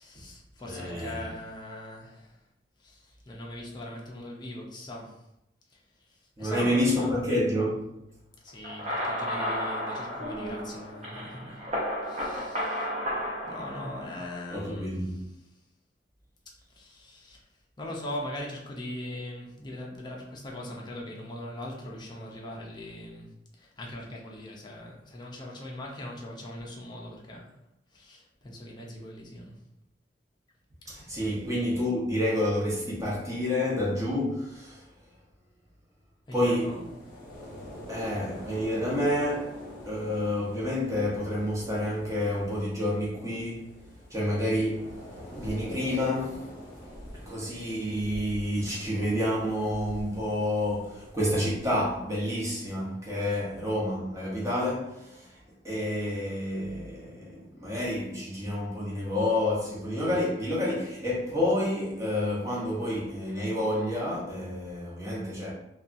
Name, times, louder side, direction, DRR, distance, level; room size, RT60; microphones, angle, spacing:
voice 1, 0.0-2.4 2.8-5.2 5.7-7.2 8.4-11.6 12.0-12.9 13.4-15.5 16.7-17.4 17.8-27.6 27.9-29.6 30.9-31.1 36.3-36.9, left 1 dB, 25° left, 0.5 m, -41 dB
voice 2, 0.6-1.3 6.4-7.9 14.5-15.2 30.9-34.8 36.3-36.9 37.9-43.8 44.1-45.1 45.3-46.5 47.1-55.4 55.6-65.5, left 1 dB, 20° right, 0.8 m, -29 dB
sound 1, 8.6-14.4, equal, 40° right, 0.5 m, -33 dB
sound 2, 36.6-51.8, equal, 50° left, 0.8 m, -45 dB
2.7 x 2.3 x 2.5 m
head